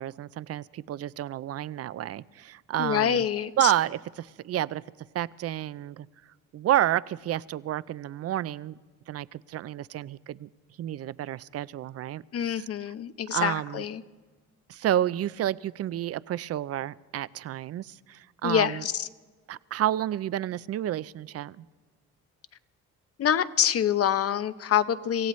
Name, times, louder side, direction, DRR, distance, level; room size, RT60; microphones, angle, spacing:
voice 1, 0.0-3.2 3.6-4.8 5.1-6.1 6.5-8.7 9.1-10.5 10.8-12.2 13.3-13.8 14.7-18.8 19.5-21.7, right 12 dB, 55° right, 19 dB, 0.5 m, -30 dB
voice 2, 2.8-3.7 12.3-14.0 18.4-19.1 23.2-25.3, left 9 dB, 50° left, 13 dB, 0.7 m, -26 dB
26.0 x 16.0 x 3.2 m, 1.4 s
cardioid pair, 90°, 30 cm